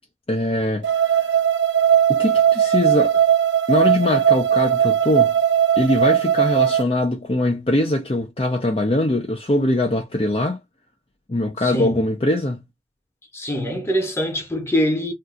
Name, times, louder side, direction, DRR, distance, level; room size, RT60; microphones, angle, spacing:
voice 1, 0.3-1.3 2.1-3.2 3.7-5.4 5.8-10.6 11.3-12.6, left 1 dB, 30° left, 0.6 m, -22 dB
sound 1, 0.8-6.8, right 9 dB, 85° right, 0.7 m, -18 dB
voice 2, 11.6-12.0 13.3-15.1, equal, 15° left, 1.0 m, -23 dB
2.7 x 2.4 x 3.7 m
head